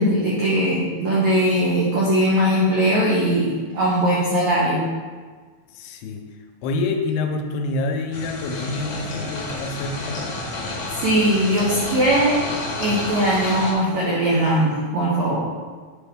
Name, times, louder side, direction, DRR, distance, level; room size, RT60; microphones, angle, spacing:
voice 1, 0.0-4.8 10.9-12.4 12.8-15.4, right 1 dB, 80° right, -6 dB, 1.6 m, -20 dB
voice 2, 5.7-6.2 6.6-10.2, left 3 dB, 85° left, 4 dB, 2.6 m, -27 dB
sound 1, 8.1-13.7, left 2 dB, 65° left, 1.5 m, -30 dB
8.6 x 4.3 x 3.5 m, 1.5 s
omnidirectional pair, 4.5 m